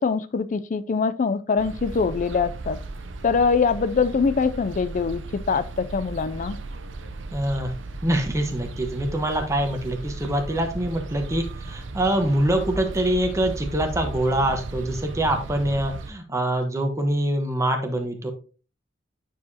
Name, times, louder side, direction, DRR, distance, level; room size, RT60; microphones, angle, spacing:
voice 1, 0.0-2.8 3.2-6.6, left 5 dB, 40° left, 0.4 m, -23 dB
sound 1, 1.6-16.1, right 2 dB, 70° right, 0.7 m, -36 dB
voice 2, 7.3-7.7 8.0-18.3, right 1 dB, 15° right, 1.1 m, -24 dB
9.4 x 4.8 x 2.8 m
head